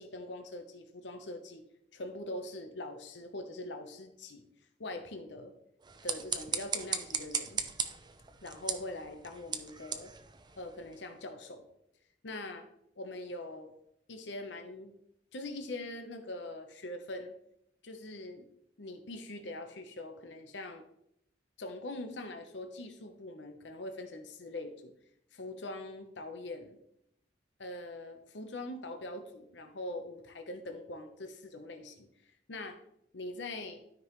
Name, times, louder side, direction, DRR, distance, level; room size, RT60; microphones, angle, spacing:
voice 1, 0.0-1.6 1.9-4.5 4.8-5.5 6.0-7.6 8.4-10.1 10.6-11.6 12.2-12.7 13.0-13.7 14.1-14.9 15.3-17.3 17.8-18.4 18.8-20.8 21.6-24.9 25.3-26.8 27.6-32.1 32.5-32.8 33.1-33.8, left 2 dB, 75° left, 5 dB, 1.0 m, -42 dB
sound 1, 5.8-11.1, right 6 dB, 25° right, 0.6 m, -38 dB
12.5 x 5.4 x 3.1 m, 0.76 s
head